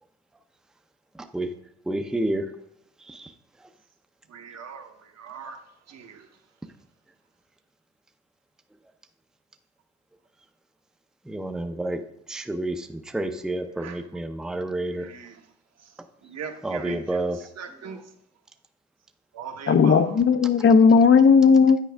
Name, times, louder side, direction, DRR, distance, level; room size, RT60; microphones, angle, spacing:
voice 1, 1.1-1.5 1.9-2.5 3.0-3.7 11.2-12.0 12.3-15.1 16.6-17.5 17.8-18.0, right 1 dB, ahead, 6 dB, 0.5 m, -30 dB
voice 2, 4.3-5.6 5.9-6.3 13.8-14.0 15.0-15.4 15.8-15.9 16.2-17.2 17.6-18.0 19.3-20.2, right 6 dB, 60° right, 5 dB, 1.0 m, -39 dB
voice 3, 19.7-21.8, left 5 dB, 45° left, 11 dB, 0.5 m, -16 dB
8.8 x 4.7 x 3.4 m, 0.71 s
cardioid pair, 90°, 30 cm